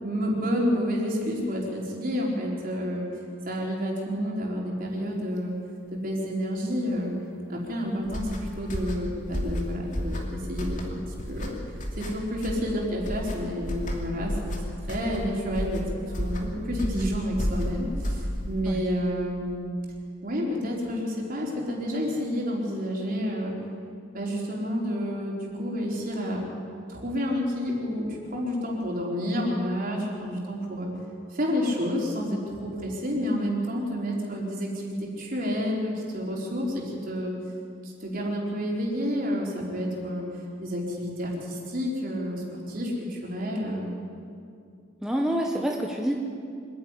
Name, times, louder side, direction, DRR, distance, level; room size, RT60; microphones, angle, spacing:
voice 1, 0.0-3.1 3.4-5.5 5.9-7.1 7.5-11.0 11.3-11.6 12.0-14.6 14.9-19.7 20.2-23.5 24.1-26.4 26.9-30.9 31.3-37.3 37.8-40.3 40.6-43.9, equal, 45° right, -2 dB, 4.4 m, -29 dB
sound 1, 8.0-18.7, equal, 40° left, 2.7 m, -32 dB
voice 2, 45.0-46.1, equal, 5° right, 0 dB, 1.3 m, -27 dB
25.5 x 10.5 x 9.9 m, 2.4 s
head